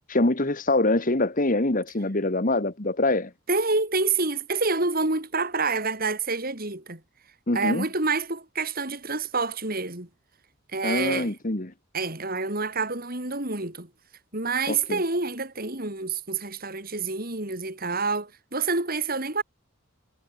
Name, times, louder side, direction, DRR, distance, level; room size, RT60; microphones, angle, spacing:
voice 1, 0.1-3.3 7.5-7.9 10.8-11.7 14.7-15.0, left 2 dB, 40° left, 1.7 m, -24 dB
voice 2, 3.5-7.0 7.5-10.1 10.7-11.3 11.9-13.9 14.3-19.4, right 3 dB, 45° right, 5.1 m, -27 dB
head